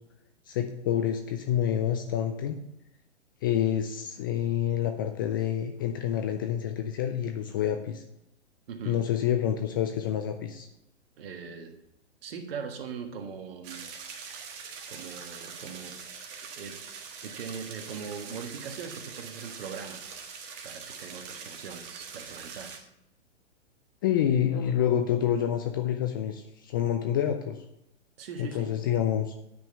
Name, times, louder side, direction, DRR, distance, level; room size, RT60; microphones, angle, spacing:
voice 1, 0.5-2.6 3.4-8.0 8.9-10.7 24.0-27.6 28.4-29.3, left 10 dB, 20° left, 6 dB, 0.3 m, -28 dB
voice 2, 8.7-9.0 11.2-11.8 12.2-13.9 14.9-16.0 16.5-16.8 17.2-20.0 20.6-22.9 28.2-28.8, right 6 dB, 55° right, 5 dB, 1.7 m, -40 dB
sound 1, 13.6-22.8, right 6 dB, 35° right, 1.5 m, -43 dB
9.4 x 5.3 x 6.7 m, 0.85 s
hypercardioid pair, 125°, 35 cm